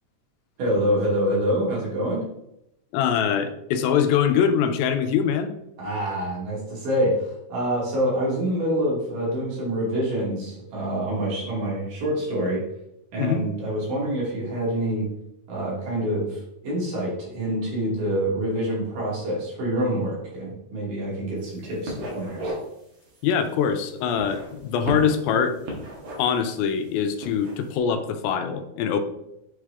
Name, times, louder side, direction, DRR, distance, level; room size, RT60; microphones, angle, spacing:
voice 1, 0.6-2.3 5.8-12.6 13.1-15.1 15.5-22.5, equal, 65° right, -5 dB, 3.9 m, -26 dB
voice 2, 2.9-5.5 13.2-13.5 23.2-25.6 26.2-29.0, left 7 dB, 90° left, 8 dB, 2.5 m, -23 dB
sound 1, 21.4-21.6 21.8-22.7 23.1-23.2 24.0-25.3 25.6-26.5 27.1-27.6, right 1 dB, 45° right, 1.7 m, -34 dB
7.3 x 4.8 x 3.3 m, 0.83 s
omnidirectional pair, 4.2 m